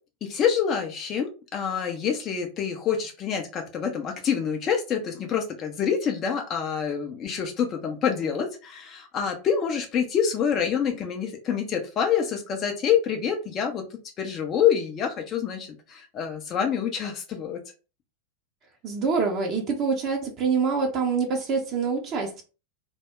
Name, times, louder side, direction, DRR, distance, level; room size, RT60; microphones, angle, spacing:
voice 1, 0.2-17.6, left 7 dB, 30° left, 0.5 m, -27 dB
voice 2, 18.8-22.4, right 5 dB, 30° right, 0.6 m, -25 dB
2.2 x 2.1 x 3.4 m
figure-of-eight pair, 90°, 0 cm